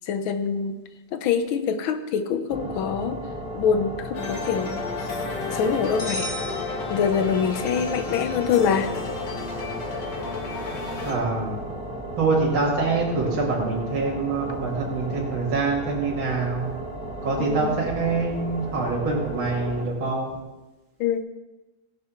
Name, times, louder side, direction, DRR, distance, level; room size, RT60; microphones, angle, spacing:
voice 1, 0.0-0.7 1.1-3.2 3.5-4.7 5.0-5.2 5.5-6.3 6.9-8.9 17.4-17.8 21.0-21.2, left 7 dB, 80° left, 9 dB, 1.6 m, -24 dB
sound 1, 2.5-19.9, right 1 dB, 5° right, 1.2 m, -35 dB
sound 2, 4.1-11.1, left 5 dB, 60° left, 1.9 m, -33 dB
sound 3, 6.0-7.5, equal, 40° left, 2.5 m, -35 dB
voice 2, 11.0-11.6 12.2-16.7 17.2-20.3, right 3 dB, 75° right, -5 dB, 2.6 m, -25 dB
15.5 x 10.5 x 3.1 m, 1.1 s
omnidirectional pair, 2.2 m